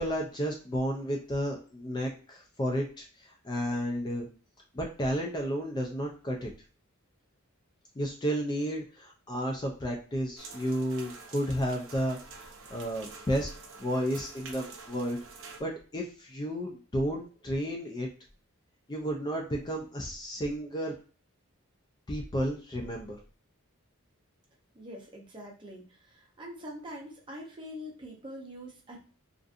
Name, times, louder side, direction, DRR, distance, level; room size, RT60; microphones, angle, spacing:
voice 1, 0.0-4.3 4.7-6.5 8.0-13.5 13.8-15.2 15.6-18.1 18.9-20.9 22.1-23.2, equal, 20° left, 1 dB, 0.3 m, -32 dB
sound 1, 10.4-15.6, right 4 dB, 65° right, 0.5 m, -47 dB
voice 2, 24.7-29.1, equal, 20° right, -1 dB, 0.6 m, -44 dB
2.5 x 2.5 x 2.4 m, 0.37 s
head